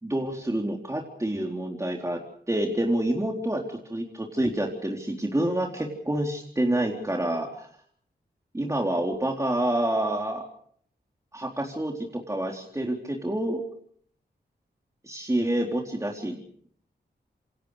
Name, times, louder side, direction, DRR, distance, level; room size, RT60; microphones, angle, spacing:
voice 1, 0.0-2.2 2.5-7.7 8.5-10.4 11.3-13.6 15.0-16.4, right 1 dB, 15° right, 1 dB, 4.0 m, -28 dB
28.0 x 26.5 x 5.1 m, 0.62 s
wide cardioid pair, 70°, 18 cm